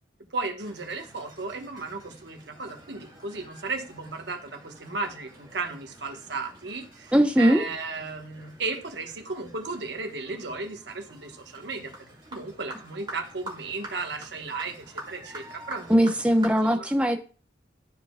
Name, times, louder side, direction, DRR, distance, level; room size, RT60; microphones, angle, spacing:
voice 1, 0.3-11.9 12.3-15.9 16.6-16.9, right 3 dB, 70° right, 5 dB, 1.1 m, -35 dB
sound 1, 0.6-16.5, right 1 dB, 25° right, 1.9 m, -47 dB
voice 2, 7.1-7.7 15.9-17.2, equal, 5° right, 5 dB, 0.7 m, -20 dB
12.0 x 4.6 x 2.2 m, 0.37 s
head